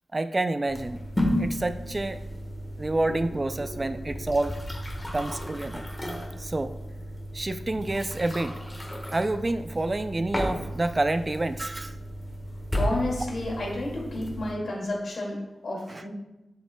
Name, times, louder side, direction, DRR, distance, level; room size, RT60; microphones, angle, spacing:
voice 1, 0.1-1.0 1.4-2.2 2.8-4.6 5.1-5.8 6.4-6.8 7.3-8.6 9.1-11.9 15.9-16.0, right 2 dB, 30° right, 10 dB, 0.3 m, -28 dB
sound 1, 0.7-14.5, equal, 15° left, 1.3 m, -34 dB
voice 2, 12.8-16.1, left 1 dB, 65° left, -2 dB, 2.2 m, -31 dB
7.3 x 7.0 x 2.2 m, 0.98 s
wide cardioid pair, 90°, 0 cm